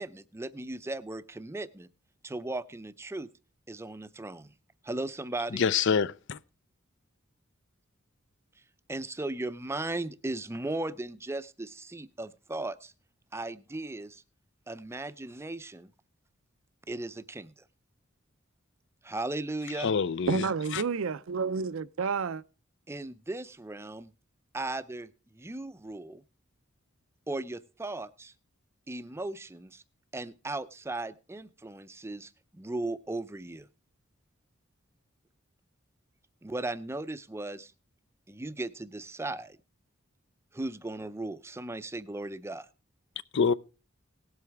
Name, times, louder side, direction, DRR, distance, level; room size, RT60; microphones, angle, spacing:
voice 1, 0.0-1.9 2.2-3.3 3.7-4.5 4.8-5.6 8.9-12.9 13.3-14.2 14.7-15.9 16.9-17.5 19.0-19.9 22.9-24.1 24.5-26.2 27.3-28.3 28.9-29.8 30.1-33.7 36.4-37.7 38.3-39.6 40.5-42.7, right 2 dB, 10° right, 0.5 m, -37 dB
voice 2, 5.5-6.4 19.8-20.4 20.7-20.8 43.3-43.5, left 6 dB, 60° left, 0.5 m, -26 dB
voice 3, 20.3-22.4, right 5 dB, 70° right, 0.5 m, -30 dB
18.0 x 7.8 x 3.5 m
head